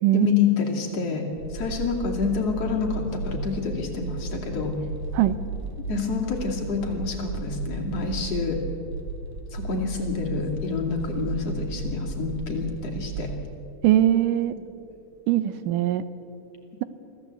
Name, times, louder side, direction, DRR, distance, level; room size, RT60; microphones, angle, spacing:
voice 1, 0.1-1.3 1.5-4.7 5.9-8.6 9.5-13.3, left 5 dB, 50° left, 0 dB, 3.6 m, -27 dB
sound 1, 1.3-13.3, right 4 dB, 60° right, 3.0 m, -34 dB
voice 2, 13.8-14.6 15.3-16.0, right 13 dB, 90° right, 14 dB, 2.4 m, -21 dB
23.5 x 15.5 x 8.2 m, 2.7 s
omnidirectional pair, 3.6 m